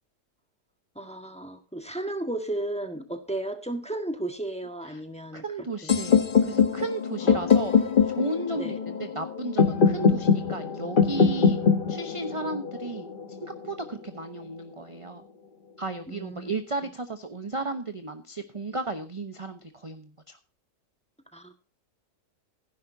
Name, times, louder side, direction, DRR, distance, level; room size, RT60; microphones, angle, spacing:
voice 1, 0.9-5.4 5.8-5.9 7.2-7.5 8.6-8.7 16.1-16.5 21.3-21.5, right 1 dB, 5° left, 6 dB, 1.3 m, -34 dB
voice 2, 5.3-11.6 11.9-13.1 13.4-15.2 15.8-20.4, right 3 dB, 25° right, 8 dB, 0.7 m, -34 dB
sound 1, 5.9-13.8, left 6 dB, 35° left, 1.1 m, -23 dB
16.0 x 11.0 x 2.7 m, 0.36 s
omnidirectional pair, 1.8 m